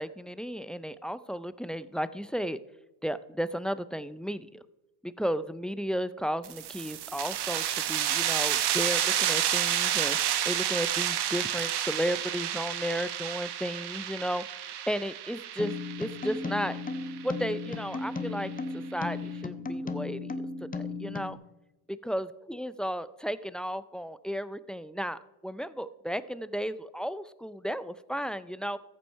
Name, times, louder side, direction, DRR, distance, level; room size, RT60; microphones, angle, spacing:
voice 1, 0.0-2.6 3.0-4.6 5.0-10.2 10.4-15.7 16.0-16.8 17.2-18.5 18.9-20.3 20.6-21.4 21.9-28.8, equal, ahead, 15 dB, 0.4 m, -34 dB
sound 1, 6.4-17.8, right 10 dB, 60° right, 1.4 m, -30 dB
sound 2, 15.6-21.3, left 3 dB, 20° left, 1.0 m, -35 dB
14.0 x 7.7 x 4.7 m, 0.97 s
hypercardioid pair, 70°, 46 cm